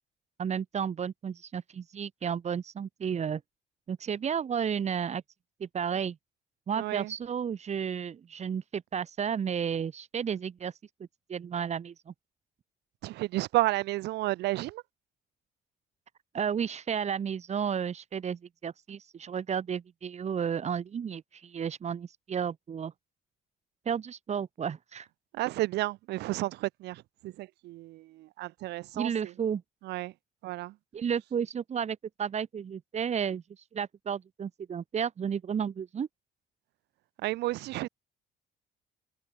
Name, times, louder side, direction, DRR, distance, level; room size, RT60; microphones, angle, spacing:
voice 1, 0.4-3.4 3.9-5.2 5.6-6.2 6.7-10.7 11.3-12.1 16.3-22.9 23.9-25.1 28.9-29.6 30.9-33.4 33.7-36.1, right 7 dB, 40° right, 5.5 m, -32 dB
voice 2, 6.8-7.1 13.0-14.8 25.3-29.3 29.8-30.1 30.4-30.7 37.2-37.9, right 18 dB, 85° right, 6.4 m, -32 dB
cardioid pair, 110°, 17 cm